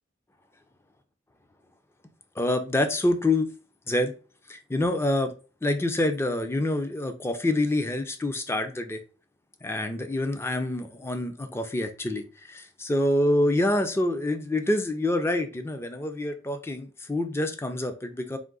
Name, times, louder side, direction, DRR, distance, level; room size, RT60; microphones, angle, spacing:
voice 1, 2.4-3.5 3.9-4.1 4.5-5.3 5.6-9.0 9.6-18.4, left 1 dB, 15° left, 0.4 m, -26 dB
3.7 x 2.6 x 3.7 m
head